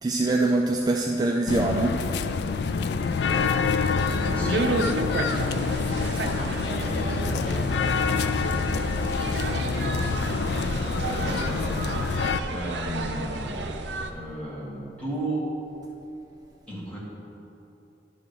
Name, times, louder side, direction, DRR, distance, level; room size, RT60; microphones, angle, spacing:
voice 1, 0.0-2.0 5.8-6.0, right 2 dB, 20° right, 0 dB, 0.3 m, -24 dB
sound 1, 1.5-12.4, left 5 dB, 65° left, 0.3 m, -27 dB
sound 2, 2.3-13.1, equal, 40° left, 0.7 m, -36 dB
sound 3, 3.2-14.1, right 2 dB, 70° right, 0.6 m, -32 dB
voice 2, 4.3-4.7 6.7-7.3 11.0-11.8 12.5-13.7 14.1-15.6 16.7-17.0, right 1 dB, 5° left, -7 dB, 1.8 m, -34 dB
10.5 x 3.6 x 6.7 m, 2.9 s
head